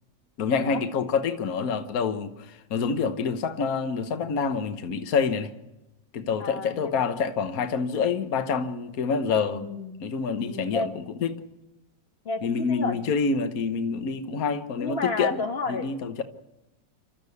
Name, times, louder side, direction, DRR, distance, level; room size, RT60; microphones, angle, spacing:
voice 1, 0.4-5.5 6.1-9.6 10.0-11.4 12.4-15.4 15.7-16.2, left 5 dB, 55° left, 1.5 m, -27 dB
voice 2, 6.4-6.9 9.4-10.0 10.4-10.9 12.3-13.0 14.8-15.9, left 3 dB, 35° left, 1.9 m, -31 dB
28.0 x 13.0 x 8.4 m
omnidirectional pair, 2.0 m